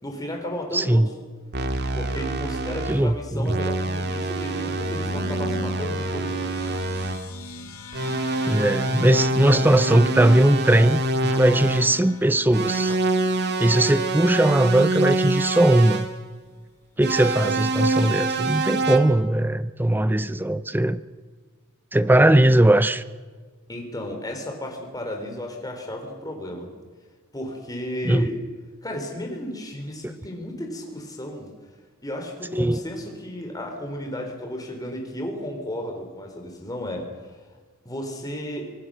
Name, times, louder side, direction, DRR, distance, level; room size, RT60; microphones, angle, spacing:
voice 1, 0.0-1.1 1.9-6.4 13.5-13.8 23.7-26.7 27.3-28.4 28.8-31.5 32.0-37.1 37.8-38.7, left 1 dB, 15° left, 2 dB, 4.1 m, -33 dB
voice 2, 0.7-1.1 2.9-3.6 8.5-13.0 13.6-16.1 17.0-21.0 21.9-23.0 28.1-28.3 32.5-32.8, right 1 dB, 10° right, 14 dB, 0.6 m, -19 dB
sound 1, 1.5-3.1 3.4-7.3 7.9-12.0 12.5-16.1 17.0-19.0, right 2 dB, 50° right, 2.0 m, -25 dB
sound 2, 4.5-15.3, left 1 dB, 80° left, 2.0 m, -41 dB
26.0 x 19.5 x 6.5 m, 1.5 s
head